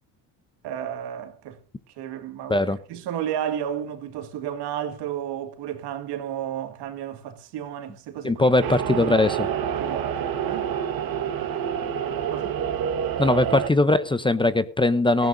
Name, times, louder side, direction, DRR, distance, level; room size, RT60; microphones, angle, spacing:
voice 1, 0.6-1.6 2.0-8.5 8.9-9.3 9.8-10.7 12.3-12.6 15.2-15.3, right 10 dB, 75° right, 2.1 m, -33 dB
voice 2, 8.2-9.5 13.2-15.3, left 2 dB, 10° left, 0.7 m, -20 dB
sound 1, 8.6-13.7, right 8 dB, 60° right, 1.6 m, -27 dB
18.5 x 15.0 x 2.7 m
cardioid pair, 95°, 41 cm